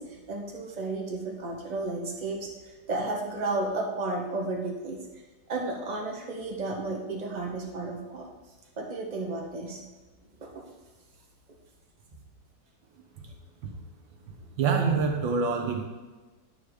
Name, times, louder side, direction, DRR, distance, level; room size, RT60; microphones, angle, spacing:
voice 1, 0.0-5.0 5.5-8.3 8.8-9.8 10.4-10.6, right 2 dB, 25° right, -1 dB, 1.4 m, -33 dB
voice 2, 14.6-15.8, right 5 dB, 85° right, 3 dB, 1.9 m, -25 dB
9.5 x 7.2 x 5.0 m, 1.2 s
omnidirectional pair, 2.1 m